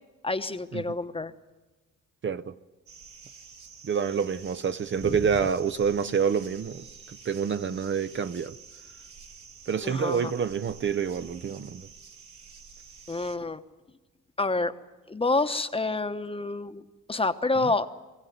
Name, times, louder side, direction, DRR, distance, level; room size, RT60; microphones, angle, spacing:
voice 1, 0.2-1.3 9.8-10.3 13.1-13.6 14.4-14.7 15.1-16.8 17.1-17.9, left 3 dB, 20° left, 1.1 m, -28 dB
voice 2, 2.2-2.5 3.8-8.6 9.7-11.9 17.6-17.7, right 7 dB, 40° right, 0.7 m, -28 dB
sound 1, 2.9-13.4, right 5 dB, 70° right, 2.3 m, -49 dB
22.5 x 16.0 x 9.3 m
cardioid pair, 90°, 30 cm